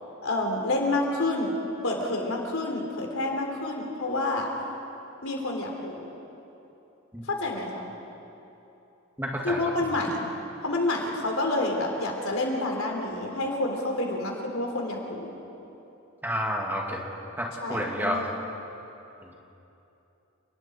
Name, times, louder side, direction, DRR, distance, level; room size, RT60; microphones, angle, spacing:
voice 1, 0.2-1.5 1.8-4.5 5.2-6.1 7.3-7.9 9.4-10.3 10.6-15.3 17.6-18.3, left 2 dB, 80° left, 1 dB, 3.6 m, -28 dB
voice 2, 9.2-9.6 16.2-17.0 17.4-18.2 19.2-19.3, equal, 10° right, -1 dB, 2.4 m, -30 dB
29.5 x 20.0 x 4.6 m, 2.9 s
head